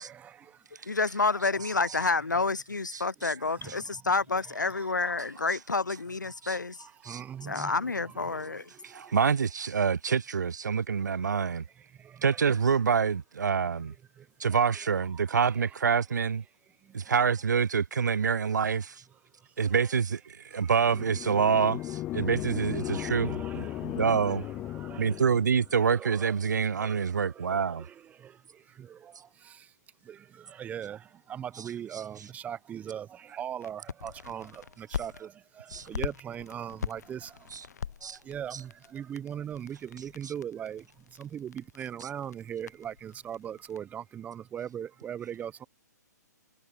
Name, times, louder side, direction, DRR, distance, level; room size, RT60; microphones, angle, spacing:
voice 1, 0.0-1.0 1.3-2.5 2.9-5.1 6.1-9.4 10.4-10.6 11.0-13.1 13.6-16.0 16.4-17.3 18.5-18.7 19.1-22.3 22.6-25.4 25.8-29.7 30.0-37.7 38.0-45.7, right 9 dB, 15° right, 0.8 m, -42 dB
voice 2, 0.9-6.8 7.4-8.7, left 3 dB, 90° left, 0.5 m, -29 dB
voice 3, 2.9-3.3 6.4-6.6 7.0-7.2 7.6-7.7 8.8-11.6 12.2-13.9 14.4-16.4 16.9-19.0 19.6-24.4 25.0-27.9 35.7-35.9 37.5-37.6 38.0-38.2, right 6 dB, 75° right, 0.4 m, -27 dB
sound 1, 20.8-25.7, left 15 dB, 20° left, 0.4 m, -36 dB
sound 2, 33.6-35.2 35.7-43.8, left 7 dB, 65° left, 0.9 m, -42 dB
figure-of-eight pair, 125°, 10 cm